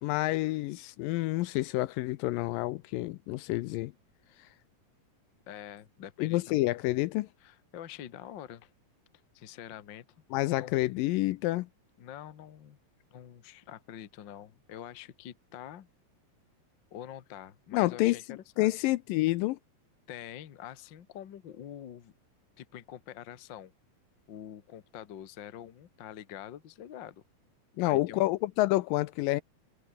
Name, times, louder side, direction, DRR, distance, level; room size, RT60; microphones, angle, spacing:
voice 1, 0.0-3.9 6.2-7.3 10.3-11.7 17.7-19.6 27.8-29.4, left 18 dB, 80° left, 2.2 m, -28 dB
voice 2, 5.5-6.8 7.4-8.7 9.3-10.1 10.5-10.8 12.0-12.8 13.1-15.9 16.9-18.2 18.5-18.7 20.1-22.1 22.6-23.7 24.3-27.2 27.8-28.2, left 10 dB, 60° left, 1.2 m, -46 dB
omnidirectional pair, 4.2 m